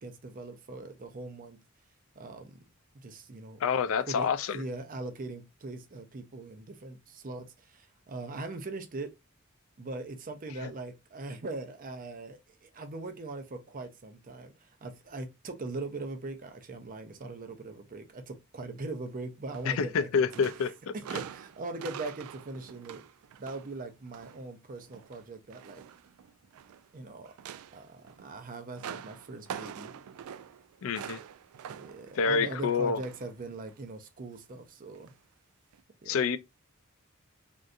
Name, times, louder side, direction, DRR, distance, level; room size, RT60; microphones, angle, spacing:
voice 1, 0.0-1.6 2.2-2.6 2.9-3.6 4.1-9.1 9.8-23.1 23.4-25.8 26.9-27.3 27.7-29.9 31.7-35.1 36.0-36.2, right 2 dB, 40° right, 0.6 m, -41 dB
voice 2, 3.6-4.6 19.7-20.7 30.8-31.2 32.2-33.0 36.1-36.4, left 5 dB, 65° left, 0.4 m, -27 dB
sound 1, 19.5-20.0 20.3-24.4 24.8-26.9 27.2-33.4 33.7-33.9 34.9-35.1 35.7-35.8, right 8 dB, 90° right, 0.3 m, -45 dB
3.6 x 2.6 x 2.4 m
head